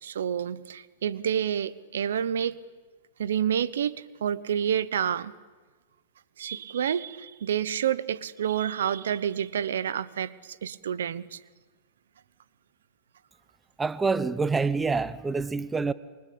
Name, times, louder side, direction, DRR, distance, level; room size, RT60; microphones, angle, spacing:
voice 1, 0.0-2.6 3.2-5.3 6.4-11.4, right 9 dB, 85° right, 1.0 m, -29 dB
voice 2, 13.8-15.9, right 4 dB, 10° right, 0.8 m, -26 dB
28.5 x 24.0 x 8.6 m
hypercardioid pair, 135°, 0 cm